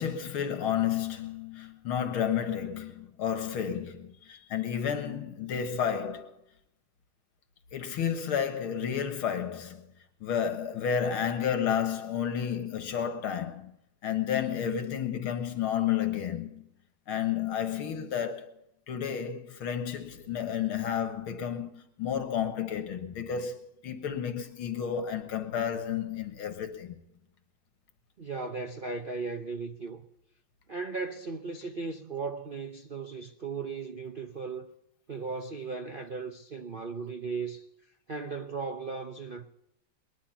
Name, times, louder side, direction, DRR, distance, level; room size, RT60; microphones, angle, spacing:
voice 1, 0.0-6.4 7.7-9.9 10.2-13.7 14.0-16.7 17.1-18.6 18.9-27.0, left 8 dB, 80° left, 2.4 m, -31 dB
voice 2, 28.2-30.0 30.7-34.7 35.1-37.7 38.1-39.5, right 4 dB, 60° right, 0.5 m, -36 dB
20.5 x 11.5 x 5.7 m
omnidirectional pair, 2.3 m